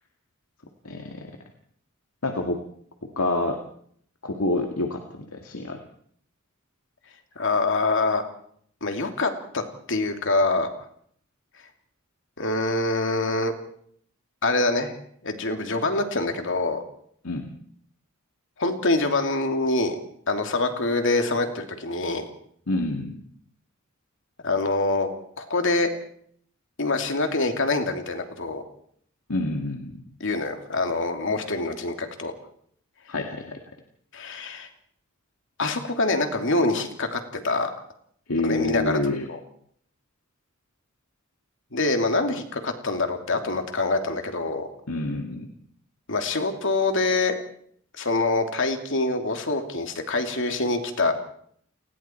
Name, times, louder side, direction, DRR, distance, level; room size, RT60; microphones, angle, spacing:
voice 1, 0.8-1.3 2.2-2.6 3.2-3.6 4.2-5.8 17.2-17.5 22.7-23.2 29.3-30.1 33.1-33.6 38.3-39.3 44.9-45.5, left 2 dB, 90° left, 3 dB, 2.1 m, -27 dB
voice 2, 7.4-8.2 8.8-9.6 9.9-10.7 12.4-13.5 14.4-15.0 15.2-16.8 18.6-20.0 20.3-22.2 24.4-25.1 25.4-25.9 26.8-28.6 30.2-32.3 34.1-34.7 35.6-37.7 38.4-39.0 39.3-39.4 41.7-44.7 46.1-47.4 48.0-51.1, left 2 dB, 65° left, 5 dB, 2.8 m, -25 dB
29.5 x 20.0 x 4.5 m, 0.64 s
head